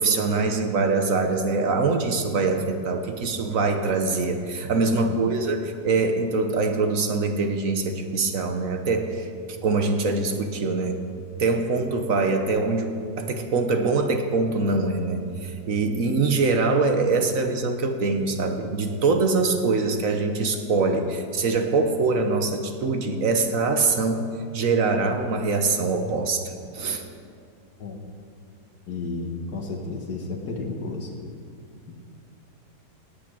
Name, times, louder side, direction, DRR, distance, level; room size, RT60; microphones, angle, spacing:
voice 1, 0.0-9.3 9.6-11.0 11.4-24.2 24.5-27.0, right 3 dB, 55° right, 5 dB, 1.2 m, -23 dB
voice 2, 4.8-5.2 27.8-28.0 28.9-31.1 31.9-32.0, left 3 dB, 65° left, 1 dB, 1.9 m, -32 dB
18.0 x 6.1 x 8.4 m, 2.3 s
omnidirectional pair, 1.8 m